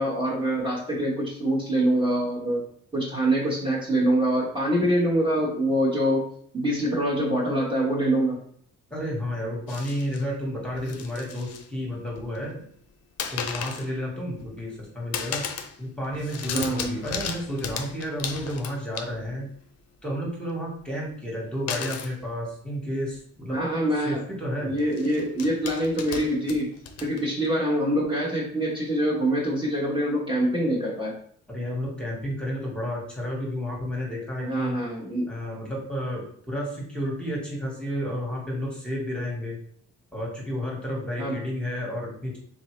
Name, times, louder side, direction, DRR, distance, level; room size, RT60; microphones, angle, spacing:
voice 1, 0.0-2.6 2.9-6.3 6.5-8.4 16.5-16.9 23.5-24.2 24.6-26.7 27.0-31.2 34.4-35.3 41.2-41.4, right 1 dB, 15° right, -6 dB, 1.1 m, -25 dB
voice 2, 8.9-12.6 13.3-15.4 15.8-19.5 20.0-23.6 24.0-24.7 31.5-34.8 35.3-39.6 40.1-42.4, equal, 5° left, -3 dB, 1.4 m, -31 dB
sound 1, 9.7-10.2 10.7-11.7 12.0-12.5 13.2-13.9 14.3-14.8 15.1-15.8 16.0-19.4 21.7-22.2 23.1-23.2 23.5-23.7 24.8-27.5, left 7 dB, 55° left, 0.6 m, -35 dB
4.0 x 2.6 x 3.1 m, 0.63 s
cardioid pair, 90°, 30 cm